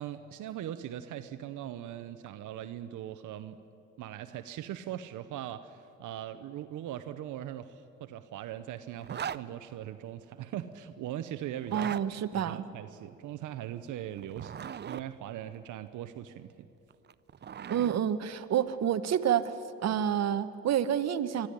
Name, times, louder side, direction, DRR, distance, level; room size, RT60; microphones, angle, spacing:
voice 1, 0.0-3.6 4.0-11.9 12.5-16.7, right 11 dB, 80° right, 10 dB, 0.8 m, -40 dB
Zipper (clothing), 9.0-9.4 11.6-12.0 14.2-15.0 16.9-18.0, right 8 dB, 35° right, 0.6 m, -39 dB
voice 2, 11.7-12.6 17.7-21.5, right 9 dB, 60° right, 11 dB, 1.0 m, -29 dB
23.5 x 13.0 x 10.0 m, 2.7 s
cardioid pair, 90°, 30 cm